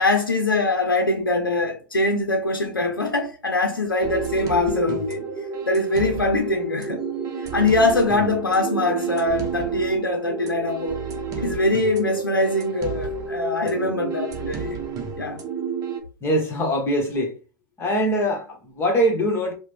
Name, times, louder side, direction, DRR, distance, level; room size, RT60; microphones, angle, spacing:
voice 1, 0.0-5.3 5.7-7.0 7.5-11.0 11.4-14.8 15.2-15.4, left 2 dB, 85° left, 0.6 m, -23 dB
sound 1, 4.0-16.0, right 5 dB, 30° right, 0.9 m, -30 dB
voice 2, 16.2-17.3 17.8-19.5, equal, 20° left, 1.4 m, -23 dB
4.7 x 2.2 x 3.3 m
figure-of-eight pair, 95°, 11 cm